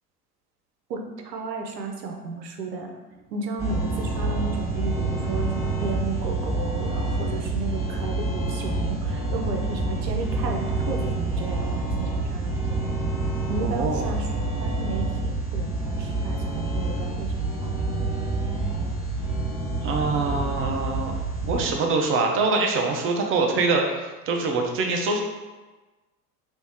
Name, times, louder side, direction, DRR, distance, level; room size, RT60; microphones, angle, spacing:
voice 1, 0.9-3.0 3.3-12.5 12.8-13.0 13.5-14.3 14.6-18.1, right 3 dB, 90° right, 2 dB, 0.7 m, -34 dB
sound 1, 3.6-21.6, right 2 dB, 5° right, 1.0 m, -27 dB
voice 2, 13.6-14.1 19.8-21.1 21.4-25.2, right 3 dB, 25° right, 1 dB, 0.6 m, -24 dB
3.1 x 2.6 x 3.5 m, 1.2 s
hypercardioid pair, 85°, 48 cm